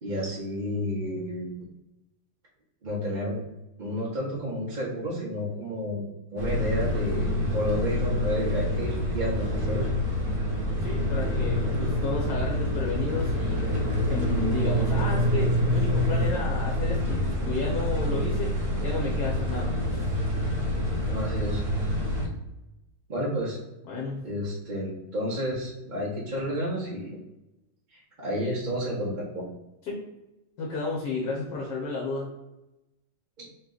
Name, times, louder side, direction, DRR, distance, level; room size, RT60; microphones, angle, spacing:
voice 1, 0.0-1.5 2.8-3.4 3.8-6.1 6.3-9.9 21.1-21.6 23.1-23.6 24.2-27.2 27.9-29.4 33.4-33.5, equal, 40° right, -7 dB, 0.7 m, -31 dB
sound 1, 6.4-22.3, left 1 dB, 60° right, 1.3 m, -26 dB
voice 2, 10.8-18.5 18.8-20.0 23.9-24.3 29.8-30.0 30.6-32.3, left 3 dB, 65° left, -2 dB, 1.3 m, -32 dB
3.3 x 3.1 x 3.8 m, 0.96 s
omnidirectional pair, 2.0 m